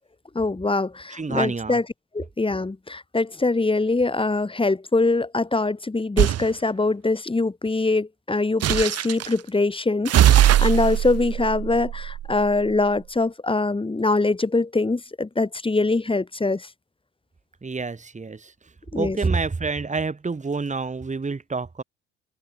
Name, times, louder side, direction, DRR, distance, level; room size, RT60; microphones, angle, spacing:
voice 1, 0.4-1.8 2.1-16.7 18.9-19.2, left 3 dB, 15° left, 5.1 m, -23 dB
voice 2, 1.1-1.8 17.6-18.5 18.9-21.8, right 4 dB, 25° right, 5.6 m, -27 dB
sound 1, 6.2-6.5 8.6-9.3 10.1-12.7, right 12 dB, 55° right, 1.5 m, -20 dB
supercardioid pair, 75°, 30 cm